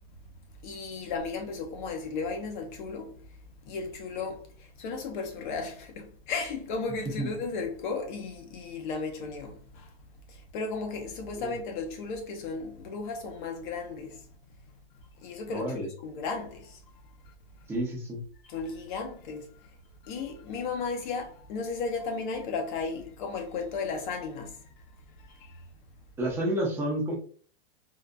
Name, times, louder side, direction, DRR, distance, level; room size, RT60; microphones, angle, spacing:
voice 1, 0.6-3.2 3.7-4.4 4.8-9.9 10.3-14.2 15.2-16.8 18.5-19.7 20.0-24.5 25.4-25.5, left 4 dB, 50° left, 0.9 m, -35 dB
voice 2, 15.5-15.9 17.7-18.2 26.2-27.1, right 1 dB, 10° right, 0.7 m, -30 dB
3.8 x 2.4 x 2.2 m
supercardioid pair, 160°, 31 cm